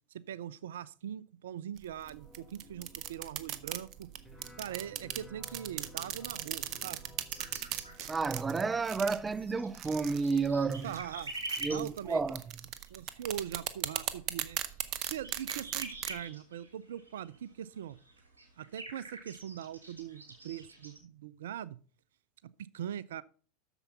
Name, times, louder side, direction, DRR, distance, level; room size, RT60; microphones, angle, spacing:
voice 1, 0.1-4.1 4.6-7.0 10.8-11.3 11.7-12.2 12.9-14.6 15.1-18.0 18.6-21.8 22.4-23.2, right 10 dB, 70° right, 0.4 m, -41 dB
sound 1, 1.8-16.2, right 12 dB, 50° right, 0.8 m, -39 dB
sound 2, 2.0-8.9, left 1 dB, 5° left, 3.0 m, -56 dB
sound 3, 7.3-8.6 8.9-21.0, right 2 dB, 85° right, 2.7 m, -46 dB
voice 2, 8.1-10.9 11.6-12.4, right 4 dB, 20° right, 0.5 m, -31 dB
8.1 x 6.9 x 5.6 m
hypercardioid pair, 85°, 0 cm